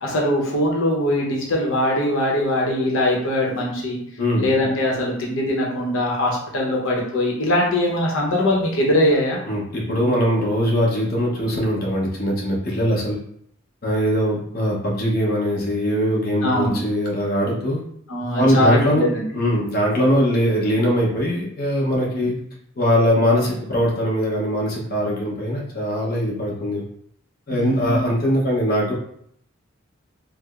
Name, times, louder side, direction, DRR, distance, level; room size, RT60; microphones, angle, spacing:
voice 1, 0.0-4.0 4.4-9.4 16.4-16.7 18.1-19.3 22.1-22.3 27.5-28.0, left 1 dB, 85° left, -2 dB, 0.8 m, -21 dB
voice 2, 9.5-13.2 13.8-17.8 18.3-22.3 22.8-26.8 27.5-28.9, equal, 50° left, -4 dB, 0.8 m, -21 dB
4.6 x 2.0 x 2.4 m, 0.69 s
head